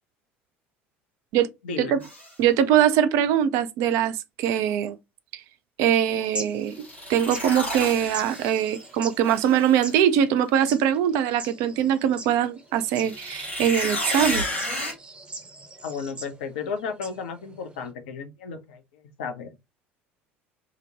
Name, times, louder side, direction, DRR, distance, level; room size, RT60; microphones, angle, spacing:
voice 1, 1.6-2.0 15.8-19.6, left 5 dB, 65° left, 0.5 m, -34 dB
sound 1, 2.0-2.3 6.7-8.8 9.2-9.9 12.9-14.9, left 1 dB, 90° left, 0.9 m, -31 dB
voice 2, 2.4-5.0 5.3-5.4 5.8-6.8 7.1-14.5, right 10 dB, 50° right, 0.3 m, -22 dB
sound 2, 5.9-17.9, right 2 dB, 20° right, 0.7 m, -42 dB
2.8 x 2.1 x 2.7 m
figure-of-eight pair, 65°, 6 cm